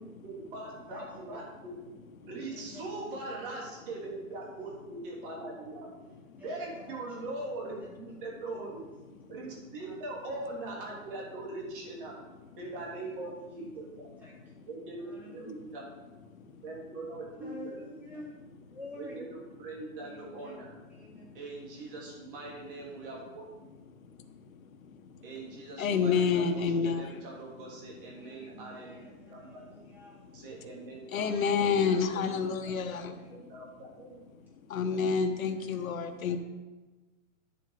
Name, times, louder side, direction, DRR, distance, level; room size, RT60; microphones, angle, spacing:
voice 1, 0.0-5.9 6.4-8.8 9.3-12.1 12.6-14.1 14.7-15.8 16.6-17.7 19.0-20.7 21.3-23.4 25.2-29.6 30.3-31.5 31.8-32.5 32.9-34.2, right 2 dB, 40° right, -2 dB, 3.4 m, -41 dB
voice 2, 0.8-1.4 2.5-3.2 3.8-4.0 6.3-7.2 7.7-8.2 9.8-10.0 11.0-11.1 11.4-11.7 12.1-12.7 13.0-14.7 15.0-15.5 16.3-16.5 17.4-18.3 18.7-19.2 20.0-20.6 20.8-21.2 28.1-30.2 31.5-33.4 35.1-36.4, left 1 dB, 5° right, -6 dB, 2.5 m, -51 dB
voice 3, 25.8-27.2 31.1-33.1 34.7-36.4, left 6 dB, 90° left, 7 dB, 1.3 m, -28 dB
10.5 x 7.5 x 5.1 m, 1.2 s
hypercardioid pair, 170°, 40 cm